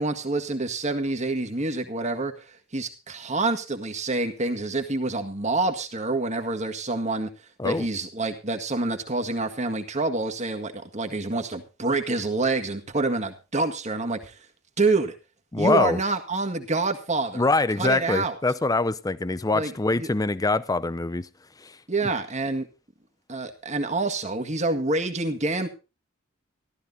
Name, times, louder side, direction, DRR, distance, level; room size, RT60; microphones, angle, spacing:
voice 1, 0.0-7.3 7.6-14.4 14.8-15.1 15.6-17.5 17.8-18.4 19.5-20.1 21.9-22.7 23.3-25.7, right 3 dB, 35° right, 1.8 m, -27 dB
voice 2, 15.5-16.0 17.3-21.3 21.6-21.7, left 3 dB, 15° left, 0.6 m, -24 dB
14.5 x 12.5 x 4.1 m
head